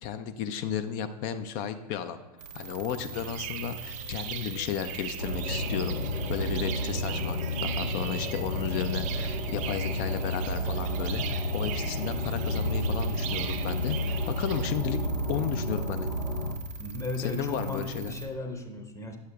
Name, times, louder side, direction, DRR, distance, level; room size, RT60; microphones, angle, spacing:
voice 1, 0.0-2.2 2.5-6.0 6.3-15.0 15.3-16.1 17.2-18.1, left 9 dB, 40° left, 10 dB, 0.4 m, -33 dB
sound 1, 2.4-18.3, right 2 dB, 90° right, 1.1 m, -41 dB
sound 2, 3.1-14.7, right 10 dB, 35° right, 0.5 m, -40 dB
sound 3, 5.2-16.5, left 1 dB, 90° left, 0.8 m, -31 dB
voice 2, 16.8-19.2, left 2 dB, 15° left, 4 dB, 0.8 m, -35 dB
9.7 x 6.5 x 2.3 m, 1.3 s
hypercardioid pair, 95°, 21 cm